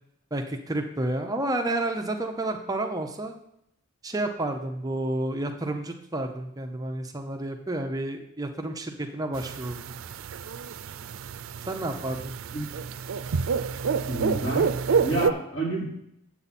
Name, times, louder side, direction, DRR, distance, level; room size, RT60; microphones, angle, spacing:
voice 1, 0.3-3.4 4.0-10.0 11.7-12.3, right 1 dB, 20° right, 4 dB, 0.6 m, -30 dB
sound 1, 9.4-15.3, right 5 dB, 85° right, 0.4 m, -28 dB
voice 2, 14.1-14.7 15.0-15.9, right 2 dB, 65° left, -6 dB, 3.9 m, -29 dB
8.6 x 7.8 x 4.2 m, 0.77 s
head